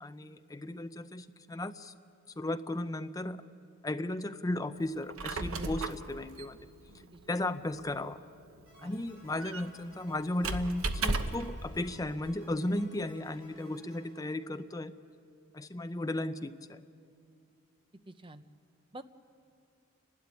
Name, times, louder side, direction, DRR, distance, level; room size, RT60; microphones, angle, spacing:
voice 1, 0.0-1.9 2.4-3.4 3.8-6.6 7.3-8.2 8.8-14.9 15.5-16.8, left 1 dB, 15° left, 10 dB, 0.6 m, -35 dB
Squeak, 4.9-11.6, right 3 dB, 90° right, 1.0 m, -37 dB
voice 2, 5.5-5.9 7.1-7.4 8.8-8.9 18.1-18.4 18.9-19.0, right 1 dB, 25° right, 10 dB, 0.7 m, -47 dB
sound 1, 8.7-15.0, equal, 55° right, 7.6 m, -59 dB
29.5 x 12.5 x 9.7 m, 2.3 s
head